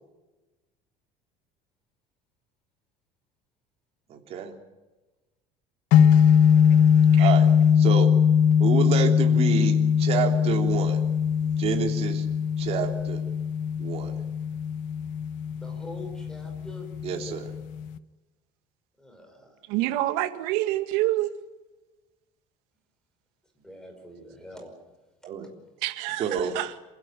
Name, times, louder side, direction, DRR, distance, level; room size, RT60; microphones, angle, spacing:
voice 1, 4.1-4.5 7.2-7.5 7.8-8.1 8.6-11.0 11.6-12.3 12.6-13.2 13.8-14.2 17.0-17.5 25.2-25.5 26.2-26.6, right 7 dB, 40° right, 3.3 m, -28 dB
sound 1, 5.9-18.0, left 7 dB, 60° left, 1.0 m, -21 dB
voice 2, 15.5-16.9 19.0-19.6 23.6-24.7 26.1-26.3, left 1 dB, 5° left, 5.4 m, -44 dB
voice 3, 19.7-21.3 25.8-26.7, right 16 dB, 90° right, 1.9 m, -27 dB
27.5 x 16.0 x 9.2 m
cardioid pair, 165°, 15 cm